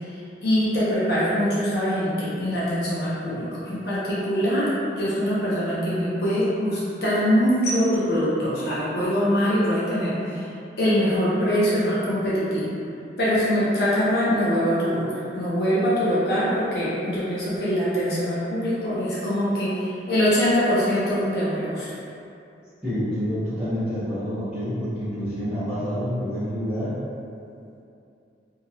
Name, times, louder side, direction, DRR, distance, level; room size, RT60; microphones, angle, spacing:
voice 1, 0.4-4.7 5.0-10.4 10.8-12.7 13.2-21.9, equal, 60° left, -9 dB, 0.7 m, -23 dB
voice 2, 22.8-26.9, equal, 5° right, -18 dB, 0.9 m, -28 dB
2.9 x 2.7 x 2.3 m, 2.6 s
head